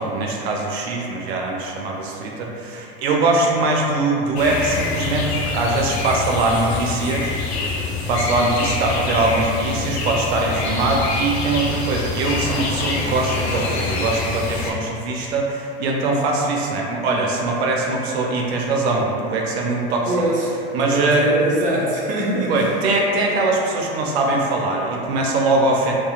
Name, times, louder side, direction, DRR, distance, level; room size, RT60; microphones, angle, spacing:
voice 1, 0.0-7.7 8.1-20.1 20.7-21.3 22.5-25.9, right 2 dB, 75° right, -1 dB, 0.5 m, -22 dB
sound 1, 4.4-14.7, left 4 dB, 80° left, 0.5 m, -25 dB
voice 2, 19.8-22.7, right 1 dB, 25° right, -4 dB, 0.5 m, -23 dB
2.7 x 2.1 x 2.4 m, 2.7 s
hypercardioid pair, 100°, 31 cm